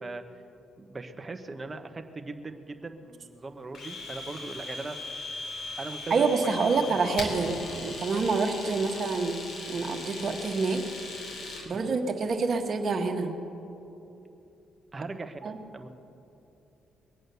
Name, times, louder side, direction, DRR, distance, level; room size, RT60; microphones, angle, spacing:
voice 1, 0.8-5.0 5.8-6.8 11.7-11.9 14.9-15.9, right 3 dB, 25° right, 7 dB, 1.2 m, -40 dB
Domestic sounds home sounds, 3.7-11.7, left 3 dB, 65° left, 2.8 m, -39 dB
voice 2, 6.1-9.4 9.7-10.8 11.6-13.3 15.4-15.5, right 4 dB, 50° right, 4 dB, 1.5 m, -27 dB
22.5 x 8.6 x 6.9 m, 2.9 s
cardioid pair, 90°, 0 cm